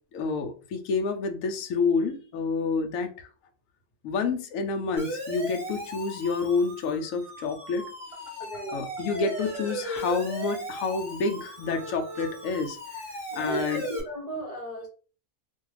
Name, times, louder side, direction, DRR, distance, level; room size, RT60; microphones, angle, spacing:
voice 1, 0.1-3.3 4.0-7.9 8.2-8.4 8.7-13.0 13.3-13.8, left 4 dB, 85° left, 5 dB, 1.0 m, -29 dB
Siren, 5.0-14.0, equal, ahead, 1.0 m, -37 dB
voice 2, 8.4-8.8 13.3-14.9, right 1 dB, 35° left, -4 dB, 0.8 m, -35 dB
2.6 x 2.3 x 3.1 m, 0.37 s
omnidirectional pair, 1.4 m